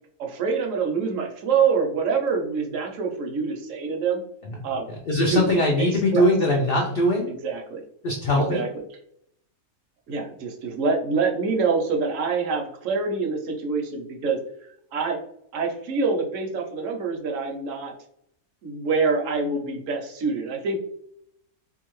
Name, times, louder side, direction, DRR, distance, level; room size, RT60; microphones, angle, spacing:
voice 1, 0.2-4.2 4.6-4.9 5.3-5.4 5.8-6.3 7.2-7.8 8.3-8.8 10.1-14.4 14.9-15.2 15.5-17.9 18.6-20.8, right 5 dB, 70° right, 2 dB, 0.9 m, -26 dB
voice 2, 5.1-7.3 8.0-8.6, left 1 dB, 70° left, 0 dB, 0.5 m, -21 dB
2.7 x 2.4 x 3.0 m, 0.72 s
omnidirectional pair, 1.5 m